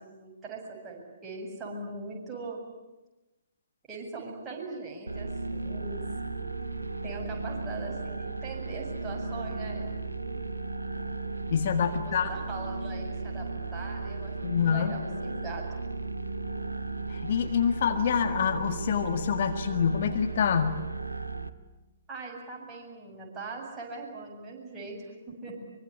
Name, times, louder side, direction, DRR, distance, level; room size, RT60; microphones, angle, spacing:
voice 1, 0.0-2.6 3.9-6.0 7.0-9.8 11.9-15.6 22.1-25.6, right 3 dB, 15° right, -2 dB, 7.8 m, -41 dB
sound 1, 5.1-21.5, right 3 dB, 85° right, 1.4 m, -35 dB
voice 2, 11.5-12.3 14.4-14.9 17.1-20.8, left 7 dB, 50° left, 7 dB, 1.8 m, -26 dB
24.5 x 24.0 x 9.9 m, 1.1 s
figure-of-eight pair, 125°, 0 cm